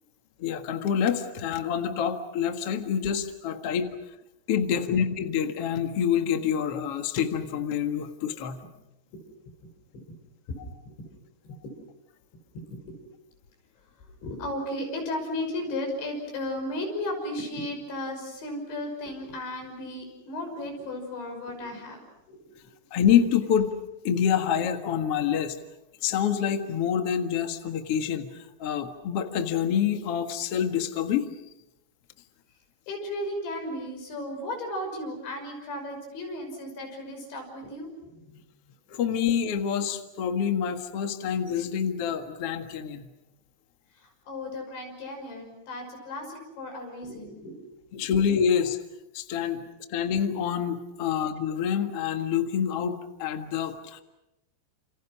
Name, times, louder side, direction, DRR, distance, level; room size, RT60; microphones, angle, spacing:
voice 1, 0.4-3.9 4.5-8.6 22.9-23.7 24.0-25.6 26.0-31.3 38.9-43.1 47.9-48.8 49.1-54.0, left 8 dB, 55° left, 6 dB, 1.8 m, -27 dB
voice 2, 12.5-13.0 14.2-22.0 22.3-22.5 32.9-38.4 43.9-47.6 48.0-48.1, left 1 dB, 85° left, 3 dB, 8.3 m, -35 dB
30.0 x 28.5 x 6.2 m, 0.89 s
omnidirectional pair, 5.0 m